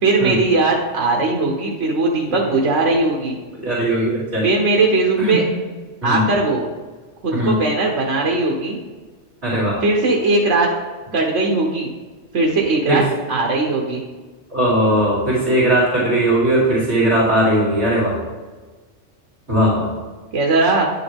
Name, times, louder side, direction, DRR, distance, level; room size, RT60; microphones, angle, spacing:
voice 1, 0.0-3.4 4.4-5.4 6.0-6.6 7.2-8.8 9.8-10.7 11.1-11.9 12.3-13.0 13.3-14.0 20.3-20.9, right 3 dB, 75° right, -1 dB, 1.4 m, -19 dB
voice 2, 3.6-4.4 5.2-5.4 6.0-6.3 7.3-7.6 9.4-9.7 12.9-13.0 14.5-18.2 19.5-19.9, right 1 dB, 55° right, -10 dB, 3.1 m, -18 dB
9.6 x 6.8 x 3.5 m, 1.4 s
omnidirectional pair, 1.3 m